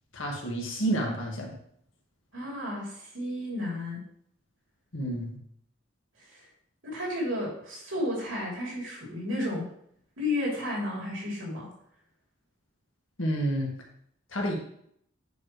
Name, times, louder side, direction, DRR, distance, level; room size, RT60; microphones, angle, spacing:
voice 1, 0.1-1.5 4.9-5.4 13.2-13.7 14.3-14.6, right 1 dB, 85° left, -1 dB, 1.8 m, -29 dB
voice 2, 2.3-4.0 6.3-6.4 6.8-9.7 10.2-11.7, left 1 dB, 85° right, -4 dB, 3.0 m, -32 dB
9.0 x 5.0 x 3.1 m, 0.68 s
head